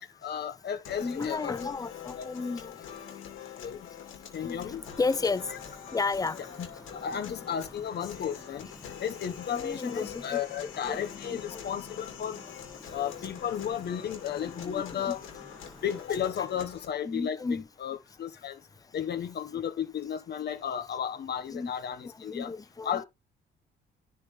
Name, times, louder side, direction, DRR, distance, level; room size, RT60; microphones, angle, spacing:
voice 1, 0.0-1.7 2.2-2.3 3.6-3.8 4.3-4.8 6.6-6.7 6.9-8.7 9.0-12.4 12.9-15.2 15.8-17.4 17.8-18.6 18.9-22.5 22.8-23.1, left 9 dB, 55° left, 1.3 m, -34 dB
sound 1, 0.9-16.9, left 9 dB, 85° left, 2.4 m, -45 dB
voice 2, 1.0-2.9 4.4-5.5 5.9-6.5 7.1-7.4 9.5-11.0 11.3-11.7 12.8-12.9 14.4-15.2 17.0-17.7 21.5-21.7 22.0-23.0, left 4 dB, 20° left, 0.5 m, -33 dB
sound 2, 4.6-16.0, left 1 dB, ahead, 2.8 m, -52 dB
10.5 x 4.2 x 3.4 m
cardioid pair, 90°, 20 cm